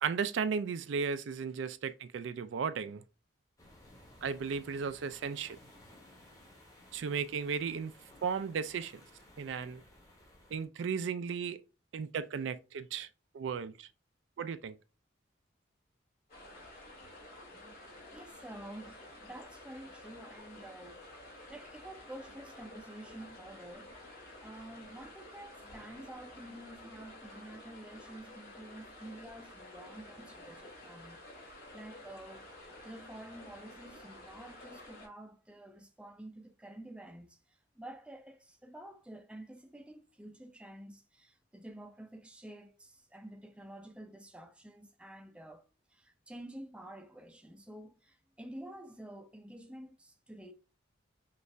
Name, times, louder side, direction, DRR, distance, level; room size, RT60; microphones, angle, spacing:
voice 1, 0.0-3.0 4.2-5.6 6.9-7.9 8.2-8.9 9.4-9.8 10.5-11.6 11.9-13.1 13.3-13.9 14.4-14.8, right 6 dB, 75° right, 0.4 m, -35 dB
sound 1, 3.6-10.7, left 1 dB, 15° left, 1.0 m, -58 dB
sound 2, 16.3-35.1, left 1 dB, 50° left, 2.1 m, -51 dB
voice 2, 18.1-23.9 24.4-32.5 32.8-50.5, right 1 dB, 5° right, 0.4 m, -49 dB
5.3 x 2.4 x 3.2 m
head